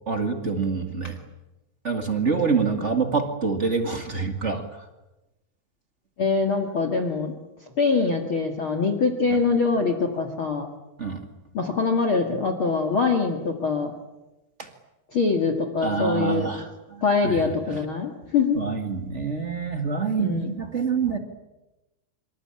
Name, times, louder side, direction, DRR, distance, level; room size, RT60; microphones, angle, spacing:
voice 1, 0.1-1.2 1.8-4.9 9.3-9.4 11.0-11.3 14.6-14.7 15.8-17.8 18.5-21.2, right 5 dB, 35° right, 6 dB, 1.1 m, -26 dB
voice 2, 6.2-7.3 7.8-10.7 11.5-13.9 15.1-16.5 17.0-18.6 20.2-20.5, left 4 dB, 40° left, 6 dB, 2.4 m, -23 dB
26.0 x 25.5 x 8.9 m, 1.0 s
omnidirectional pair, 4.5 m